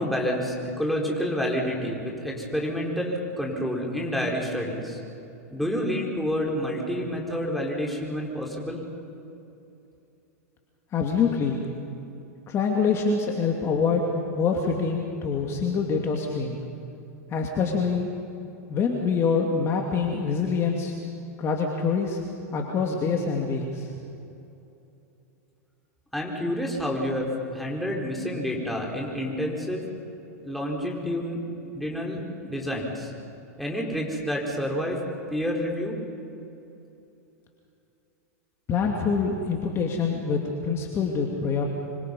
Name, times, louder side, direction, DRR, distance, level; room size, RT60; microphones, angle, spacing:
voice 1, 0.0-5.0 5.5-8.8 26.1-29.8 30.4-31.4 31.7-33.1 33.6-35.0 35.3-36.0, equal, ahead, -2 dB, 4.7 m, -29 dB
voice 2, 10.9-11.7 12.5-14.0 14.3-16.6 17.3-18.1 18.7-20.9 21.4-22.2 22.5-23.9 38.7-41.6, left 5 dB, 30° left, 1 dB, 2.5 m, -25 dB
26.0 x 24.0 x 5.5 m, 2.8 s
hypercardioid pair, 110°, 9 cm